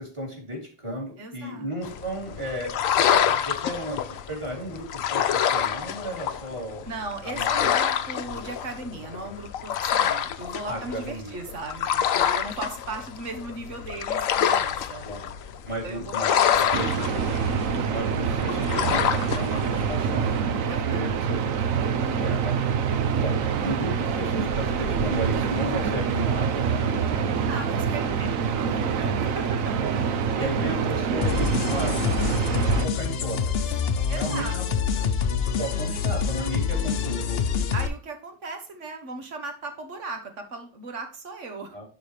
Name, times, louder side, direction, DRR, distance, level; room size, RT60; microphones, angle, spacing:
voice 1, 0.0-6.9 7.2-7.8 10.6-11.4 15.0-15.3 15.6-17.0 17.9-21.4 22.2-22.8 23.2-27.2 28.2-28.3 30.3-32.0 32.4-33.8 34.2-34.6 35.4-37.5 41.7-41.8, right 1 dB, 20° right, 0 dB, 3.0 m, -34 dB
voice 2, 1.2-1.9 6.8-15.1 15.8-17.0 20.7-21.2 27.5-29.6 29.9-30.5 31.0-31.3 34.1-34.8 37.7-41.8, right 3 dB, 65° right, 4 dB, 1.6 m, -37 dB
sound 1, 1.8-20.4, left 9 dB, 90° left, 1.1 m, -27 dB
sound 2, 16.7-32.8, right 6 dB, 85° right, 1.2 m, -26 dB
sound 3, 31.2-37.9, left 6 dB, 60° left, 0.8 m, -26 dB
11.5 x 4.1 x 3.3 m, 0.39 s
omnidirectional pair, 1.4 m